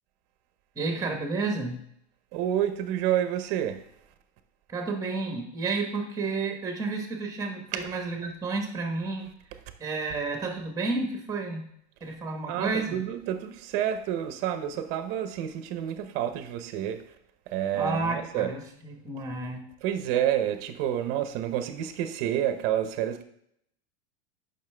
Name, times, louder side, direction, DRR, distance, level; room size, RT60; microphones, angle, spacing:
voice 1, 0.8-1.8 4.7-9.3 9.8-11.7 12.0-13.0 17.7-19.6, right 3 dB, 10° right, 1.0 m, -31 dB
voice 2, 2.3-3.8 12.1-12.2 12.5-17.0 17.5-18.5 19.8-23.2, right 11 dB, 35° right, 0.7 m, -29 dB
10.5 x 5.6 x 3.3 m
supercardioid pair, 175°, 34 cm